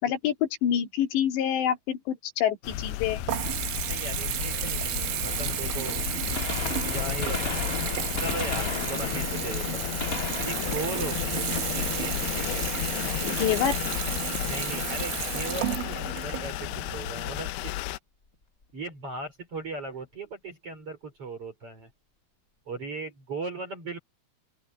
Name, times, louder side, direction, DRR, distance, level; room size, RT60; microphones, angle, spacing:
voice 1, 0.0-3.2 13.2-13.8, left 9 dB, 65° left, 4.6 m, -26 dB
sound 1, 2.6-18.0, left 16 dB, 85° left, 2.3 m, -33 dB
Water tap faucet / Bathtub (filling or washing) / Trickle dribble, 2.6-17.5, right 14 dB, 75° right, 3.6 m, -33 dB
voice 2, 3.8-6.0 6.9-7.9 8.2-9.9 10.4-12.7 14.4-17.8 18.7-21.9 22.7-24.0, right 3 dB, 30° right, 5.0 m, -38 dB
Gunshot gunfire, 6.4-12.1 14.0-14.1 15.2-15.3 16.8-16.9 18.3-18.4 18.6-18.7, left 4 dB, 40° left, 1.2 m, -37 dB
open air
omnidirectional pair, 5.7 m